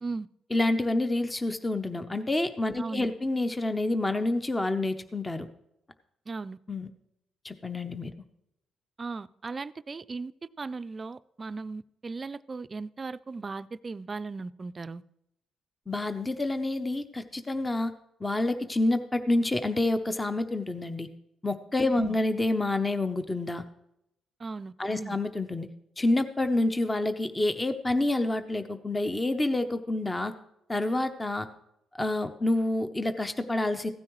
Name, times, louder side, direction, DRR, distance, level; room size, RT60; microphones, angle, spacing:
voice 1, 0.5-5.5 6.7-6.9 7.4-8.1 15.9-17.9 18.2-21.1 21.4-23.6 24.8-25.7 26.0-30.3 30.7-31.5 31.9-33.9, left 2 dB, 15° left, 9 dB, 0.7 m, -28 dB
voice 2, 2.8-3.1 6.3-6.6 9.0-10.3 10.6-15.0 21.9-22.2 24.4-25.2, right 4 dB, 30° right, 14 dB, 0.4 m, -37 dB
15.5 x 9.6 x 3.1 m, 0.81 s
cardioid pair, 90°, 0 cm